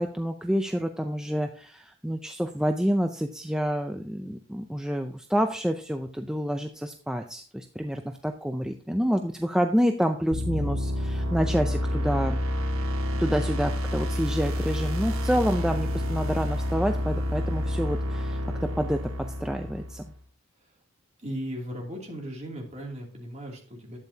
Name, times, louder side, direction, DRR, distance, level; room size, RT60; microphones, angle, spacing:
voice 1, 0.0-12.4 13.2-19.0 19.4-20.0, equal, 5° right, 5 dB, 0.4 m, -28 dB
sound 1, 10.3-20.1, left 1 dB, 85° right, 1.3 m, -29 dB
voice 2, 21.2-24.0, equal, 30° right, -1 dB, 2.8 m, -37 dB
11.5 x 9.0 x 2.8 m, 0.41 s
head